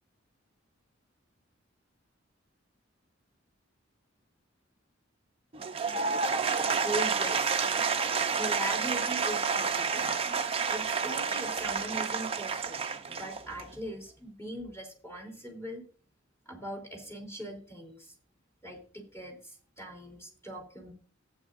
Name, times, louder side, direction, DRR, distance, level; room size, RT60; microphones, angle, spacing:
Applause / Crowd, 5.5-13.7, right 5 dB, 30° right, 0.7 m, -29 dB
voice 1, 6.8-7.6 8.4-10.1 10.7-12.8 13.1-15.8 16.4-18.1 18.6-20.9, right 1 dB, 15° left, 2 dB, 3.2 m, -40 dB
14.5 x 9.1 x 2.6 m, 0.39 s
head